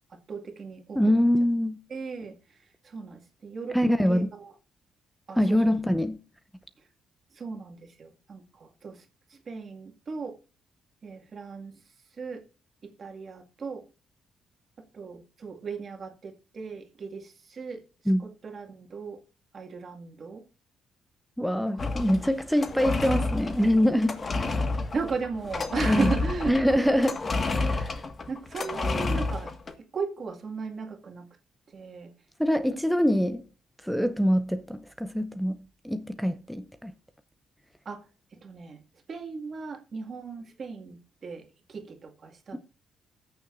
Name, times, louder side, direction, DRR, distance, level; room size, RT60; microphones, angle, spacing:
voice 1, 0.3-1.0 1.9-2.4 2.8-3.8 4.1-4.5 5.3-5.6 7.3-9.0 9.3-10.4 11.0-11.7 12.2-12.4 12.8-13.8 14.9-17.8 18.4-19.2 19.5-20.4 24.9-26.6 28.3-29.5 29.8-31.3 31.7-32.1 37.9-38.0 38.4-38.8 39.1-42.6, right 4 dB, 45° right, 2.0 m, -36 dB
voice 2, 0.9-1.8 3.7-4.3 5.4-6.2 18.1-18.3 21.4-24.2 25.9-26.1 26.5-27.2 27.5-28.0 32.4-33.4 33.8-36.9, equal, ahead, 0.6 m, -24 dB
sound 1, 21.8-29.7, left 3 dB, 35° left, 1.7 m, -30 dB
20.0 x 6.8 x 2.6 m
cardioid pair, 90°, 0 cm